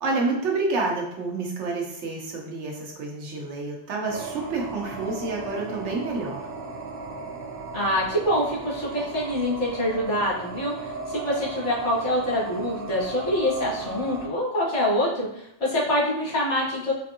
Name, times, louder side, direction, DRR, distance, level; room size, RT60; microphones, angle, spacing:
voice 1, 0.0-6.5, right 3 dB, 90° right, -1 dB, 1.1 m, -29 dB
sound 1, 4.1-14.3, right 3 dB, 60° right, 0.7 m, -36 dB
voice 2, 7.7-16.9, left 1 dB, 75° left, -6 dB, 1.7 m, -25 dB
4.3 x 2.6 x 2.7 m, 0.78 s
omnidirectional pair, 1.2 m